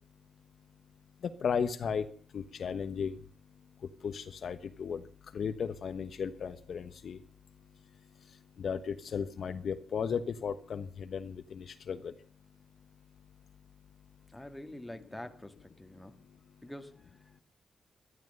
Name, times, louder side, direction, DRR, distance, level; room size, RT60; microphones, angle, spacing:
voice 1, 1.4-2.0 2.3-3.2 4.0-5.0 5.3-7.2 8.6-12.1, left 6 dB, 60° left, 1.2 m, -35 dB
voice 2, 14.3-16.2 16.6-17.4, left 1 dB, 5° left, 1.8 m, -46 dB
13.5 x 13.0 x 6.7 m
cardioid pair, 115°, 0 cm